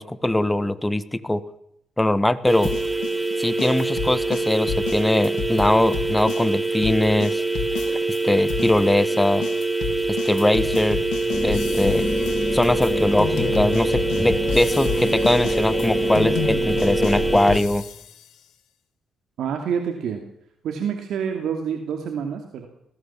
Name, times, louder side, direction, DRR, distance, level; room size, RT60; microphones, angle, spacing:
voice 1, 0.0-1.4 2.0-2.7 3.4-7.4 8.2-9.4 10.1-11.0 11.4-12.1 12.5-17.8, left 1 dB, 10° left, 14 dB, 1.4 m, -21 dB
sound 1, 2.5-17.6, right 3 dB, 10° right, 1.5 m, -25 dB
sound 2, 2.6-8.2 8.5-18.2, left 8 dB, 80° left, 3.2 m, -32 dB
sound 3, 11.3-17.4, left 3 dB, 35° left, 3.6 m, -29 dB
voice 2, 19.4-20.2 20.6-22.7, right 7 dB, 75° right, 5 dB, 2.6 m, -27 dB
20.5 x 17.0 x 7.4 m, 0.78 s
cardioid pair, 90°, 0 cm